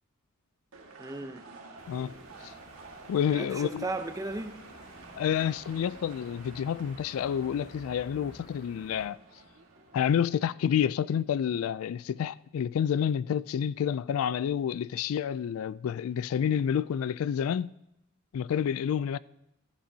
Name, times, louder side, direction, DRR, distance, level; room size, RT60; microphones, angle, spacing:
sound 1, 0.7-10.1, right 3 dB, 85° right, 1.7 m, -50 dB
voice 1, 1.0-1.4 3.3-4.6, right 2 dB, 15° right, 0.6 m, -35 dB
sound 2, 1.8-9.1, left 1 dB, 65° left, 2.7 m, -52 dB
voice 2, 3.1-3.9 5.2-9.2 9.9-17.7 18.3-19.2, left 8 dB, 80° left, 0.3 m, -29 dB
15.0 x 13.0 x 2.8 m
head